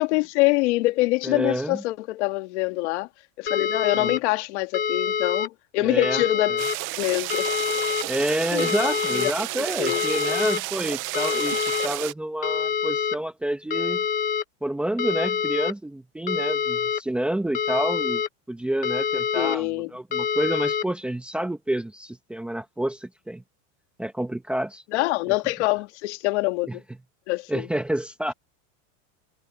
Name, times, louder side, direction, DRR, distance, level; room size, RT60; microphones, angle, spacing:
voice 1, 0.0-3.1 3.4-6.5 7.0-7.5 8.5-8.7 9.1-10.0 19.4-19.9 24.9-26.8 27.3-27.7, left 21 dB, 55° left, 2.2 m, -25 dB
voice 2, 1.2-1.8 4.0-4.1 5.8-6.2 8.1-14.0 14.6-18.2 18.5-23.4 24.0-24.8 25.3-25.4 26.7-26.8 27.5-28.3, right 1 dB, 5° right, 1.1 m, -28 dB
sound 1, 3.5-4.2 4.7-5.5 6.0-6.8 7.3-8.0 8.6-9.3 9.9-10.6 11.1-11.9 12.4-13.2 13.7-14.4 15.0-15.7 16.3-17.0 17.5-18.3 18.8-19.6 20.1-20.8, left 7 dB, 20° left, 1.6 m, -26 dB
sound 2, 6.6-12.1, right 19 dB, 30° right, 0.7 m, -31 dB
supercardioid pair, 175°, 40 cm